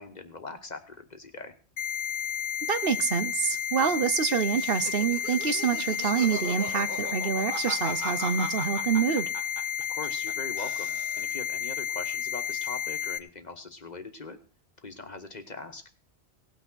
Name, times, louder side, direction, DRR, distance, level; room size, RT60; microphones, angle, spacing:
voice 1, 0.0-1.5 9.9-14.4 14.8-15.8, left 3 dB, 40° left, 7 dB, 1.4 m, -41 dB
sound 1, 1.8-13.2, left 9 dB, 85° left, 1.2 m, -32 dB
voice 2, 2.6-9.3, right 7 dB, 60° right, 11 dB, 1.0 m, -27 dB
Laughter, 4.5-10.3 10.6-11.4, right 2 dB, 45° right, 2.5 m, -38 dB
17.5 x 6.2 x 6.2 m, 0.40 s
omnidirectional pair, 1.1 m